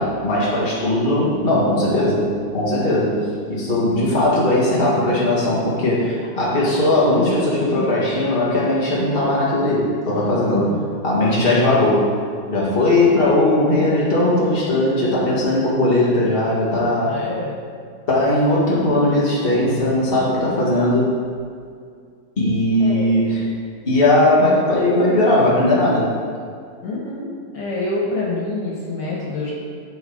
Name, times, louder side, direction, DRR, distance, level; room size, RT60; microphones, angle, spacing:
voice 1, 0.0-3.2 3.5-10.7 11.0-12.1 12.5-17.2 18.1-21.1 22.4-23.4 23.8-26.1, left 1 dB, 30° left, -7 dB, 2.1 m, -18 dB
voice 2, 10.6-11.0 17.1-17.5 22.8-23.1 26.8-27.3 27.5-29.5, left 2 dB, 70° left, -5 dB, 2.4 m, -26 dB
12.5 x 4.7 x 4.0 m, 2.2 s
omnidirectional pair, 2.0 m